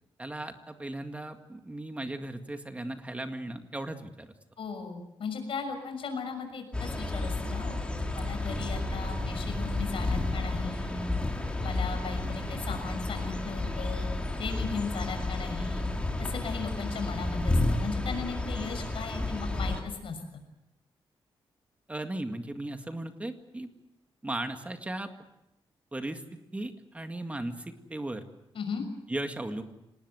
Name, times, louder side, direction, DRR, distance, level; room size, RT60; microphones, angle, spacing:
voice 1, 0.2-4.3 8.5-8.6 21.9-23.7 24.2-25.1 25.9-28.2 29.1-29.6, right 1 dB, 15° right, 6 dB, 2.0 m, -37 dB
voice 2, 4.6-7.8 8.1-11.1 11.6-14.1 14.4-15.8 16.2-20.2 28.5-28.8, left 5 dB, 70° left, 5 dB, 6.3 m, -37 dB
sound 1, 6.7-19.8, left 2 dB, 10° left, 3.2 m, -31 dB
26.0 x 19.5 x 8.0 m, 0.88 s
wide cardioid pair, 145°, 10 cm